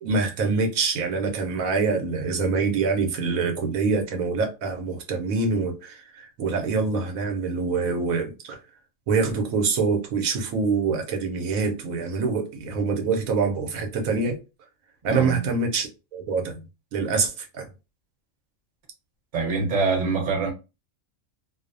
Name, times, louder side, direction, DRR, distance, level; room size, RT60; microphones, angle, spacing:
voice 1, 0.0-8.6 9.1-14.4 15.0-16.6 16.9-17.7, right 4 dB, 85° right, 1.1 m, -25 dB
voice 2, 15.0-15.5 19.3-20.5, right 4 dB, 40° right, 0.9 m, -25 dB
2.6 x 2.0 x 2.4 m
omnidirectional pair, 1.4 m